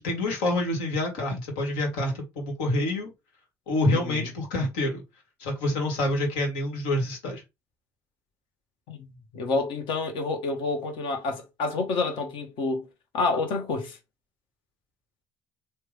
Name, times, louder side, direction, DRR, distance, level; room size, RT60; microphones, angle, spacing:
voice 1, 0.0-3.1 3.7-5.0 5.4-7.4, left 1 dB, 85° left, 1.5 m, -27 dB
voice 2, 3.9-4.3 8.9-12.9 13.1-14.0, left 3 dB, 70° left, 1.2 m, -29 dB
3.4 x 2.3 x 3.3 m
supercardioid pair, 70°, 9 cm